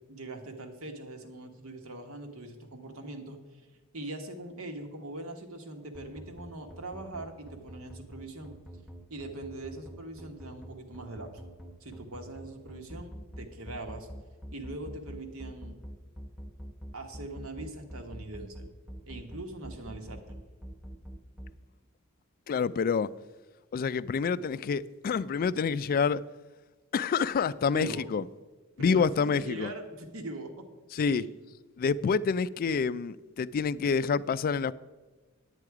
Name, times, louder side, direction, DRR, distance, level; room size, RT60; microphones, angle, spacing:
voice 1, 0.1-3.6 3.9-8.5 9.1-11.3 11.8-14.1 14.5-15.8 16.9-18.7 19.1-20.4 27.7-28.1 28.8-30.6 31.1-31.3, right 2 dB, 75° right, 1.4 m, -42 dB
sound 1, 5.9-21.5, equal, ahead, 0.9 m, -44 dB
voice 2, 22.5-23.1 23.7-26.2 26.9-28.2 28.8-29.7 30.9-31.3 31.8-34.7, left 5 dB, 45° left, 0.3 m, -27 dB
9.9 x 9.2 x 4.8 m
head